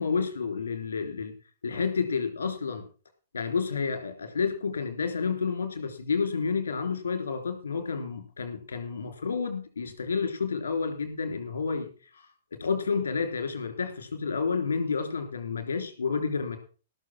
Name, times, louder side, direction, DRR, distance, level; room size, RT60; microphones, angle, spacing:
voice 1, 0.0-1.3 1.6-2.8 3.3-16.6, left 5 dB, 75° left, 8 dB, 3.5 m, -30 dB
18.5 x 6.7 x 5.9 m, 0.38 s
figure-of-eight pair, 115°, 0 cm